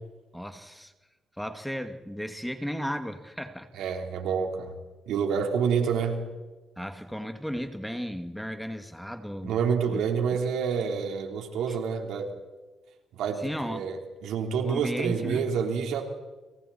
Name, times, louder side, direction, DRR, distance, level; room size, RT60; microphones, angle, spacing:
voice 1, 0.3-0.9 1.4-3.7 6.8-9.6 9.9-10.0 11.7-11.8 13.4-13.9 14.6-15.5, equal, ahead, 7 dB, 2.0 m, -35 dB
voice 2, 3.7-4.7 5.1-6.2 9.4-12.3 13.1-16.0, right 6 dB, 85° right, 3 dB, 3.9 m, -28 dB
30.0 x 28.0 x 4.4 m, 1.2 s
cardioid pair, 90°, 0 cm